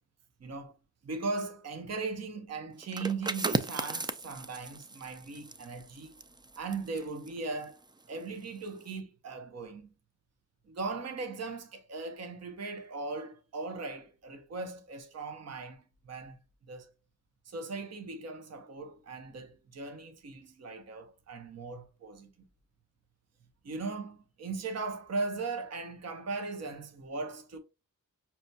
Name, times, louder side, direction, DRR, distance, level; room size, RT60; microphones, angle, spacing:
voice 1, 0.4-0.7 1.0-6.1 6.6-9.9 10.7-16.4 16.7-16.9 17.5-22.3 23.6-27.6, right 3 dB, 50° right, 0.8 m, -38 dB
sound 1, 2.8-8.3 8.7-8.9, right 3 dB, 15° right, 0.3 m, -37 dB
5.7 x 2.2 x 2.7 m
wide cardioid pair, 85°, 32 cm